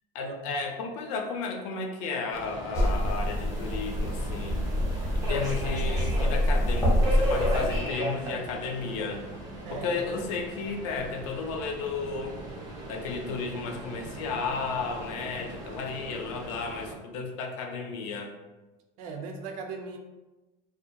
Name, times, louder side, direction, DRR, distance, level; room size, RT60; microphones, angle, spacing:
voice 1, 0.1-4.6 5.1-9.2 9.7-12.3 12.9-18.3, left 4 dB, 65° left, 3 dB, 0.4 m, -33 dB
Subway metro underground, 2.3-16.9, right 1 dB, 20° right, 0.3 m, -37 dB
sound 1, 2.7-7.8, equal, 15° left, 0.7 m, -26 dB
voice 2, 19.0-20.0, right 4 dB, 85° right, 3 dB, 0.5 m, -38 dB
2.4 x 2.2 x 2.6 m, 1.1 s
cardioid pair, 180°, 18 cm